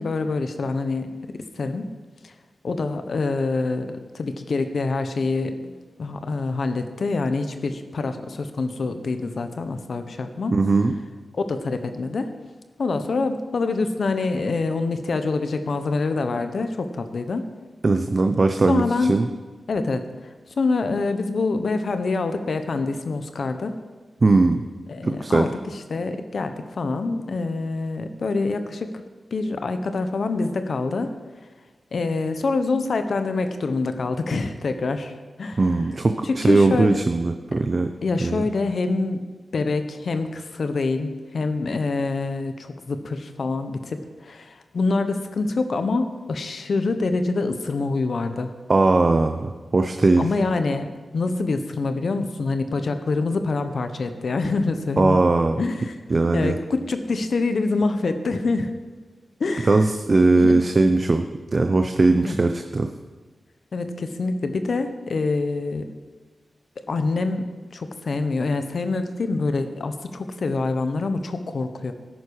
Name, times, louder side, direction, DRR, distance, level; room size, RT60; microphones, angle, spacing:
voice 1, 0.0-1.9 2.2-2.3 2.6-5.7 6.0-10.5 11.3-12.3 12.8-17.5 18.7-19.1 19.7-20.1 20.5-23.7 24.9-25.5 25.9-28.9 29.3-31.1 31.9-35.6 36.2-37.0 38.0-39.3 39.5-48.5 50.2-55.2 55.6-56.0 56.3-58.7 59.4-59.8 60.3-60.5 62.2-62.4 63.7-65.9 66.9-71.9, left 3 dB, 70° left, 8 dB, 1.1 m, -26 dB
voice 2, 10.5-10.9 17.8-19.3 24.2-24.6 25.0-25.5 35.6-37.9 38.2-38.4 48.7-50.2 55.0-55.6 56.1-56.6 59.7-61.2 61.5-62.9, right 3 dB, 45° right, 6 dB, 0.7 m, -19 dB
13.5 x 10.5 x 4.8 m, 1.4 s
wide cardioid pair, 75°, 0 cm